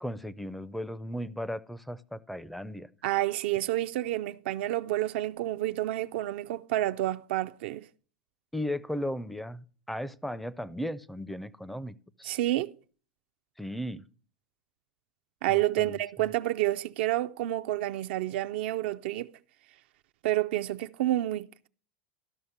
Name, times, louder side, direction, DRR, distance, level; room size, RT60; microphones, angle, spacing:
voice 1, 0.0-2.9 8.5-12.4 13.6-14.0 15.5-16.0, equal, ahead, 0.4 m, -36 dB
voice 2, 3.0-7.9 12.2-12.7 15.4-19.3 20.2-21.7, right 15 dB, 65° right, 0.4 m, -29 dB
12.5 x 5.6 x 6.6 m
supercardioid pair, 135°, 6 cm